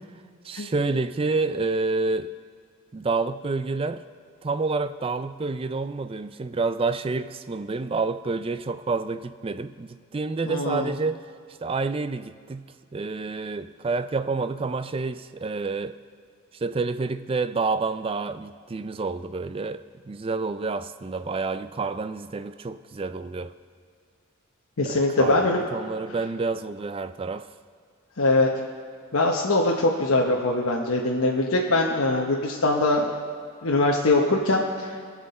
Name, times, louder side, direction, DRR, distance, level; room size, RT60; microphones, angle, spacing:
voice 1, 0.4-2.3 2.9-4.0 4.4-11.2 11.6-12.7 12.9-15.9 16.5-23.5 24.8-27.5, right 3 dB, 25° right, 0.3 m, -28 dB
voice 2, 10.5-10.9 24.8-25.6 28.2-28.5 29.1-33.1 33.6-35.0, left 2 dB, 75° left, 1.0 m, -22 dB
20.0 x 7.4 x 4.2 m
head